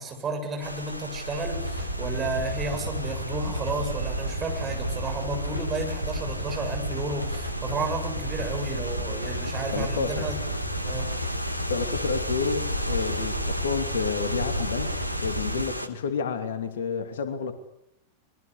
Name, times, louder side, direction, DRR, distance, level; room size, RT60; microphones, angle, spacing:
voice 1, 0.0-10.4 10.8-11.1, right 3 dB, 25° right, 4 dB, 7.7 m, -32 dB
sound 1, 0.6-15.9, equal, 85° left, 2.0 m, -35 dB
sound 2, 1.5-15.6, equal, 90° right, 5.6 m, -32 dB
voice 2, 9.7-10.3 11.7-14.9 15.2-17.5, left 5 dB, 60° left, 8 dB, 2.7 m, -30 dB
25.0 x 22.5 x 8.4 m, 0.80 s
figure-of-eight pair, 90°, 0 cm